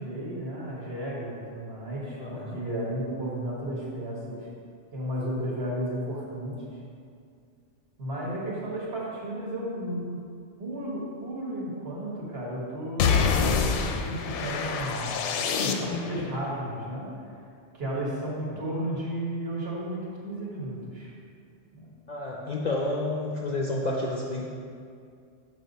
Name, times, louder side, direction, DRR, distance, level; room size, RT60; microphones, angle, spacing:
voice 1, 0.0-4.5 4.9-6.6 8.0-10.2 10.6-15.3 15.6-17.4 17.7-21.1 21.7-21.9, right 1 dB, 60° right, -5 dB, 1.7 m, -33 dB
voice 2, 2.2-2.6 17.9-18.0 22.1-24.4, left 2 dB, 50° left, -2 dB, 0.5 m, -30 dB
sound 1, 13.0-16.2, left 6 dB, 90° left, 0.9 m, -26 dB
6.2 x 5.5 x 4.0 m, 2.3 s
omnidirectional pair, 1.2 m